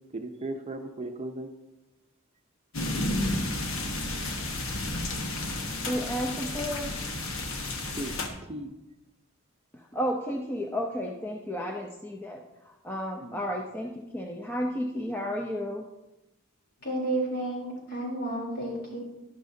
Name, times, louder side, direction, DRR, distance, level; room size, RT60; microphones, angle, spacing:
voice 1, 0.1-1.5 8.0-8.2 8.5-8.7 13.2-13.4, right 2 dB, 30° right, 4 dB, 0.7 m, -36 dB
sound 1, 2.7-8.3, left 2 dB, 70° left, 1.3 m, -32 dB
voice 2, 5.9-6.9 9.7-15.9, equal, 10° left, 0 dB, 0.6 m, -32 dB
voice 3, 16.8-19.0, right 1 dB, 50° left, -2 dB, 3.5 m, -31 dB
11.5 x 11.5 x 2.7 m, 0.97 s
head